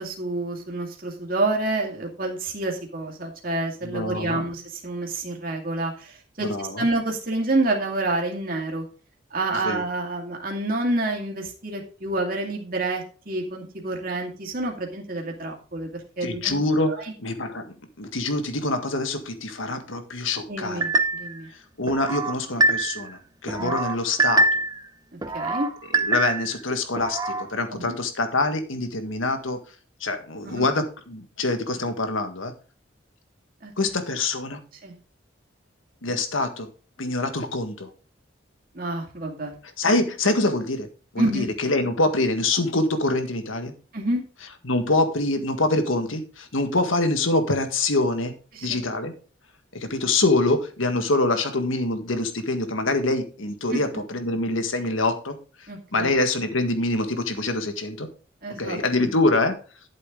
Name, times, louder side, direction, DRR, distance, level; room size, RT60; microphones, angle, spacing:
voice 1, 0.0-8.8 9.3-15.9 16.2-16.6 16.9-17.1 20.5-21.5 23.6-23.7 25.3-25.7 27.7-28.0 30.5-30.6 33.6-33.7 34.8-35.0 38.7-39.5 41.2-41.5 43.9-44.2 48.5-48.8 53.7-53.8 55.7-56.1 58.4-58.8, right 2 dB, 45° right, 0 dB, 2.4 m, -28 dB
voice 2, 3.8-4.4 6.4-6.8 9.6-9.8 16.2-17.6 18.0-20.9 21.8-24.6 26.0-29.6 30.0-32.5 33.8-34.6 36.0-36.7 37.0-37.9 39.8-40.9 41.1-43.7 44.6-48.3 48.6-49.1 49.7-55.4 55.9-58.1 58.6-59.5, left 2 dB, 85° left, 7 dB, 1.7 m, -25 dB
sound 1, 20.8-21.4 21.9-23.1 23.5-24.8 25.2-26.6 27.0-27.5, right 2 dB, 20° right, 0.8 m, -24 dB
11.5 x 7.6 x 3.8 m, 0.38 s
head